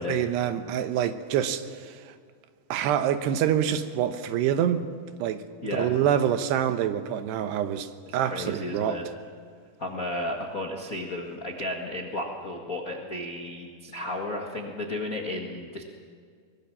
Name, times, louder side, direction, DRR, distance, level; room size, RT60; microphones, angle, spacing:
voice 1, 0.1-2.0 2.7-4.8 5.2-5.4 5.7-9.0, right 10 dB, 85° right, 3.1 m, -26 dB
voice 2, 5.6-6.0 8.2-9.0 9.8-15.8, left 1 dB, 75° left, 0.7 m, -33 dB
23.0 x 21.5 x 7.3 m
omnidirectional pair, 4.7 m